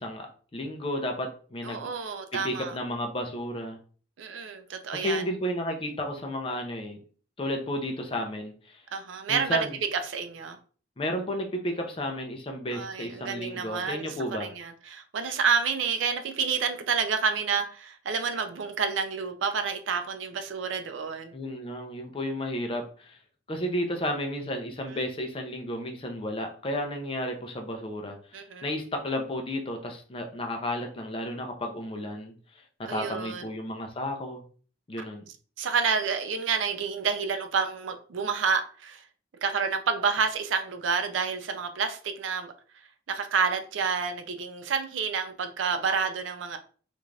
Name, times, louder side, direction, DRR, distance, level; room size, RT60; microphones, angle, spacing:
voice 1, 0.0-1.9 2.3-3.8 4.9-7.0 7.4-8.8 9.3-9.8 11.0-14.5 21.3-23.2 23.5-34.4 34.9-35.3, left 1 dB, 30° left, 0.5 m, -33 dB
voice 2, 1.6-2.7 4.2-5.2 8.9-10.6 12.7-21.3 24.9-25.0 28.3-28.7 32.9-33.5 35.6-39.1 39.4-42.5 43.1-46.6, right 5 dB, 90° right, 0.4 m, -29 dB
2.5 x 2.3 x 3.1 m
head